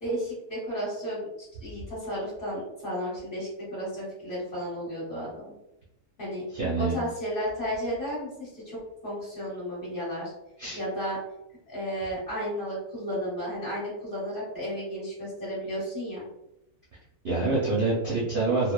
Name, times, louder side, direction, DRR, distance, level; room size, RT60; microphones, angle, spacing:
voice 1, 0.0-5.6 6.2-6.4 6.8-8.8 9.0-10.3 10.7-11.2 11.7-16.2, equal, 40° left, -7 dB, 1.2 m, -33 dB
voice 2, 6.5-6.9 10.6-10.8 17.2-18.7, right 3 dB, 55° right, -7 dB, 0.6 m, -26 dB
2.8 x 2.1 x 2.2 m, 0.85 s
omnidirectional pair, 1.6 m